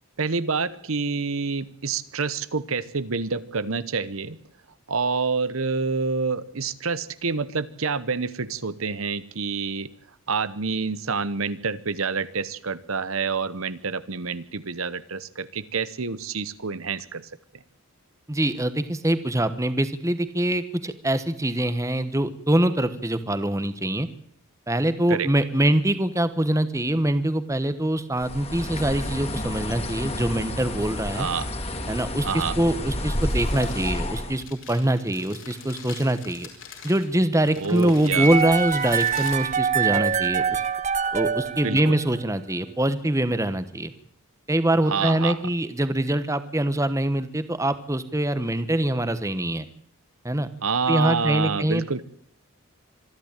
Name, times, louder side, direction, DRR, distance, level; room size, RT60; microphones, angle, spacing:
voice 1, 0.2-4.4 4.9-9.9 10.3-17.3 25.1-25.3 31.1-31.5 32.2-32.6 37.6-38.3 41.6-42.0 44.8-45.4 50.6-52.0, right 5 dB, 80° right, 15 dB, 1.0 m, -27 dB
voice 2, 18.3-24.1 24.7-31.3 31.9-36.5 36.8-40.6 41.1-43.9 44.5-49.7 50.2-50.5 50.9-52.0, right 1 dB, 15° right, 12 dB, 1.1 m, -24 dB
Bird, 28.2-34.4, left 1 dB, 30° left, 2.0 m, -30 dB
Crumpling crinkling, 33.1-40.3, left 6 dB, 65° left, 4.8 m, -44 dB
sound 1, 38.1-42.2, right 7 dB, 35° right, 0.8 m, -24 dB
26.0 x 11.5 x 9.0 m, 0.65 s
head